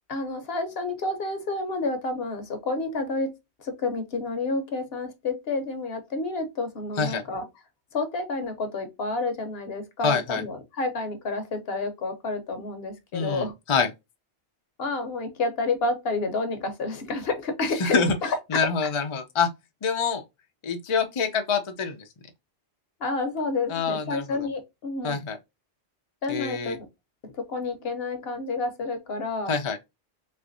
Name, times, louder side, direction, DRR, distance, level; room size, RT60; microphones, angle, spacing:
voice 1, 0.1-3.3 3.6-7.4 7.9-13.5 14.8-18.9 23.0-25.2 26.2-26.8 27.2-29.5, left 3 dB, 60° left, 1.0 m, -29 dB
voice 2, 10.0-10.4 13.1-13.9 17.8-18.1 18.5-19.5 19.8-20.2 20.6-22.0 23.7-24.5 25.0-25.4 26.3-26.8 29.5-29.8, left 5 dB, 40° left, 0.5 m, -26 dB
3.4 x 3.2 x 2.5 m
omnidirectional pair, 1.2 m